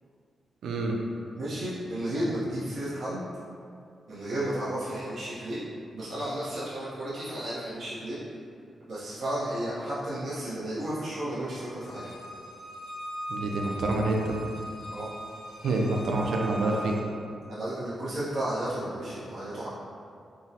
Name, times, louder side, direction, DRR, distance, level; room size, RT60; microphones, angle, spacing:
voice 1, 0.6-1.0 13.3-14.4 15.6-16.9, right 2 dB, 90° right, 0 dB, 0.4 m, -27 dB
voice 2, 1.4-3.2 4.1-5.6 5.9-8.2 8.9-12.1 14.9-15.1 16.0-16.4 17.5-19.7, right 1 dB, 60° right, -11 dB, 0.7 m, -33 dB
Bowed string instrument, 11.8-17.0, equal, 65° left, 0.4 m, -39 dB
3.6 x 2.0 x 2.7 m, 2.4 s
wide cardioid pair, 160°, 0 cm